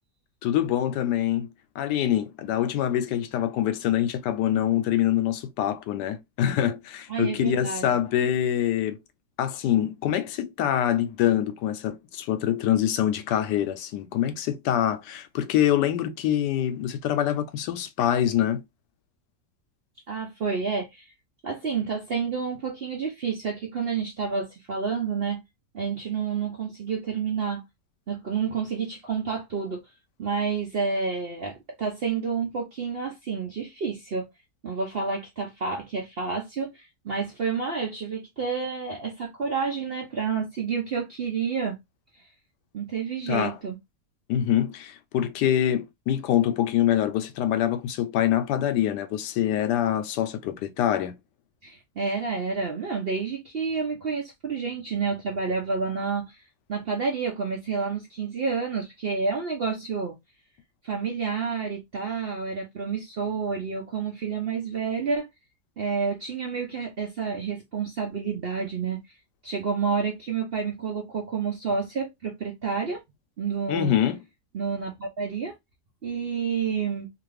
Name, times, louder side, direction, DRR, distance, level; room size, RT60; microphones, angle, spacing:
voice 1, 0.4-1.5 1.8-9.0 9.4-18.6 43.3-43.6 44.3-51.2 73.7-74.2, left 11 dB, 85° left, 1.2 m, -25 dB
voice 2, 7.1-7.9 20.1-21.1 21.4-25.4 25.7-27.6 28.1-29.8 30.2-34.3 34.6-41.8 42.2-42.3 42.7-43.8 51.6-56.4 56.7-60.1 60.8-65.3 65.8-69.0 69.4-73.0 73.4-73.9 74.5-75.6 76.0-77.1, right 5 dB, 60° right, 0.6 m, -29 dB
2.8 x 2.6 x 3.2 m
omnidirectional pair, 1.8 m